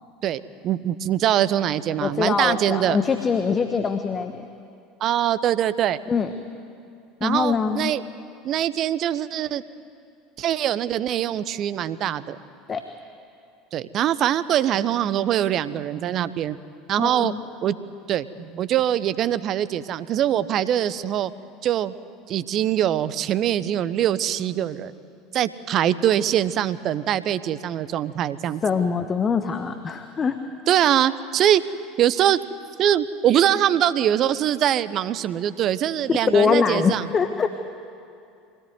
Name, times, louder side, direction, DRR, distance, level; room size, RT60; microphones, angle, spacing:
voice 1, 0.2-3.0 5.0-6.0 7.2-8.0 8.4-9.6 10.4-12.4 13.7-16.6 16.9-17.3 17.6-17.7 18.1-21.3 21.6-21.9 22.3-24.9 25.3-28.6 30.7-31.6 32.0-32.4 32.8-37.0, right 11 dB, 40° right, 16 dB, 1.0 m, -23 dB
voice 2, 2.0-4.5 6.1-6.3 7.2-7.9 12.7-12.8 17.0-17.4 28.6-30.4 36.1-37.5, left 5 dB, 25° left, 8 dB, 1.3 m, -23 dB
24.5 x 18.0 x 9.4 m, 2.5 s
figure-of-eight pair, 70°, 0 cm